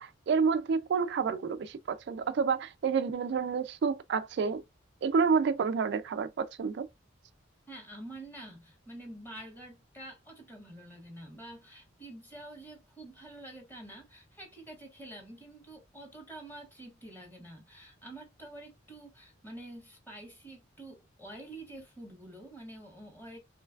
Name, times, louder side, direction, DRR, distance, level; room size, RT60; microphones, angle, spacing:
voice 1, 0.0-4.6 5.0-6.9, right 5 dB, 60° right, 0.3 m, -29 dB
voice 2, 7.7-23.4, right 1 dB, 10° left, 1.2 m, -47 dB
3.2 x 3.1 x 2.3 m
head